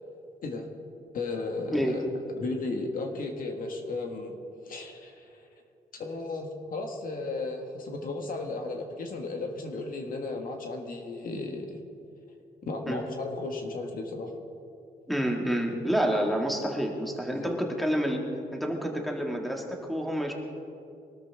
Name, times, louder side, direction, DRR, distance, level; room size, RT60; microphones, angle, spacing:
voice 1, 1.1-4.3 4.6-5.2 6.0-11.8 12.6-14.3 17.3-17.6, left 3 dB, 60° left, 3 dB, 1.8 m, -35 dB
voice 2, 15.1-20.3, equal, ahead, 0 dB, 2.0 m, -29 dB
23.0 x 13.0 x 3.6 m, 2.6 s
cardioid pair, 110°, 16 cm